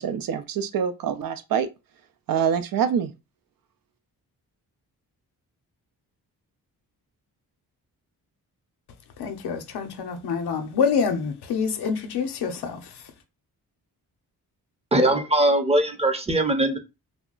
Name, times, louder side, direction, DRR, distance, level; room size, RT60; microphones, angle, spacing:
voice 1, 0.0-1.7 2.3-3.1, right 7 dB, 60° right, 0.5 m, -25 dB
voice 2, 9.2-12.9, left 6 dB, 75° left, 0.6 m, -26 dB
voice 3, 14.9-16.8, right 1 dB, 15° right, 0.6 m, -21 dB
2.3 x 2.0 x 3.8 m
cardioid pair, 60°, 39 cm